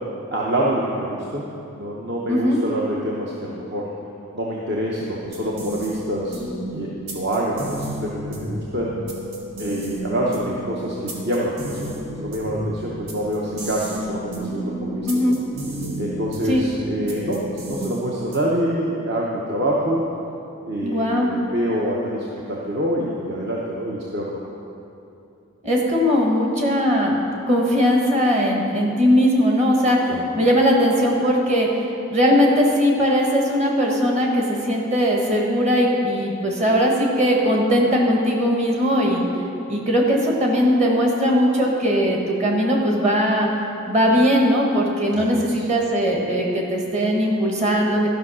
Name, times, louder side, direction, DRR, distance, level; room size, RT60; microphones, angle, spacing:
voice 1, 0.3-3.9 4.3-6.4 6.7-8.9 9.6-15.4 16.0-20.0 20.7-24.4 30.1-30.2 45.1-45.6, right 1 dB, 50° right, -4 dB, 0.9 m, -26 dB
voice 2, 2.3-2.6 15.0-15.3 16.4-16.6 20.8-21.3 25.6-27.2 27.5-31.7 32.1-39.2 39.7-43.5 43.8-48.1, equal, 30° right, -1 dB, 1.3 m, -19 dB
sound 1, 5.2-18.7, equal, 85° right, 1.8 m, -32 dB
12.5 x 5.6 x 6.2 m, 2.7 s
head